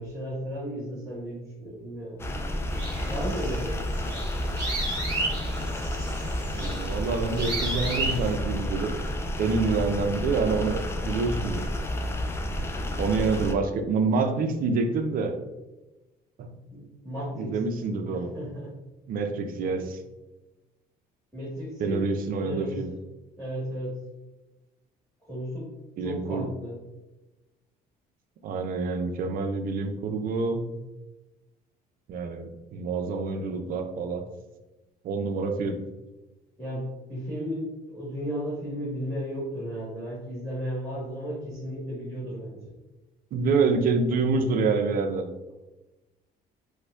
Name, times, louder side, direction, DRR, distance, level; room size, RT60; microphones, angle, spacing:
voice 1, 0.0-2.2 3.1-3.8 16.7-17.6 18.1-18.8 21.3-22.1 22.4-22.8 23.4-24.0 25.3-25.7 26.0-26.8 36.6-42.6, equal, ahead, -9 dB, 1.4 m, -34 dB
sound 1, 2.2-13.5, equal, 15° left, 0.3 m, -30 dB
sound 2, 2.7-8.3, right 2 dB, 25° right, 1.3 m, -34 dB
voice 2, 6.5-8.9 9.4-11.6 13.0-15.4 16.4-16.5 17.4-18.3 19.1-20.0 21.8-22.9 26.0-26.5 28.4-30.6 32.1-34.2 35.0-35.8 43.3-45.3, right 4 dB, 55° right, 6 dB, 0.5 m, -27 dB
4.7 x 2.1 x 2.3 m, 1.1 s
cardioid pair, 110°, 17 cm